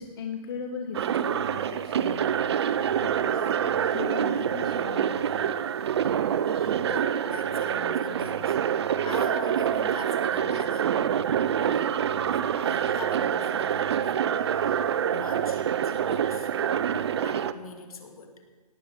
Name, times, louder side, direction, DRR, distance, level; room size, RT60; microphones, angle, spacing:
voice 1, 0.0-2.5 3.0-5.6, left 6 dB, 35° left, 5 dB, 1.0 m, -39 dB
sound 1, 0.9-17.5, right 9 dB, 40° right, 0.6 m, -26 dB
voice 2, 6.5-10.9 11.6-12.0 12.2-14.8 15.1-16.5 17.2-18.4, left 5 dB, 60° left, 6 dB, 2.4 m, -43 dB
18.0 x 7.4 x 8.1 m, 1.4 s
hypercardioid pair, 160°, 21 cm